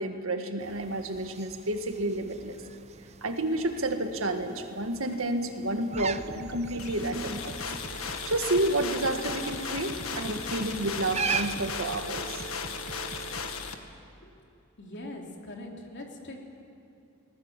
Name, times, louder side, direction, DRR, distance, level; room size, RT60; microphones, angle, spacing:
voice 1, 0.0-2.6 3.2-7.6 8.1-12.5, right 1 dB, 70° right, 6 dB, 1.9 m, -30 dB
sound 1, 0.6-11.9, right 6 dB, 30° right, 0.7 m, -40 dB
sound 2, 5.9-13.6, right 3 dB, 50° right, 1.3 m, -43 dB
sound 3, 6.8-13.7, left 6 dB, 90° left, 1.6 m, -36 dB
voice 2, 14.8-16.4, left 1 dB, 55° left, 1 dB, 3.3 m, -42 dB
28.0 x 19.5 x 7.5 m, 2.7 s
head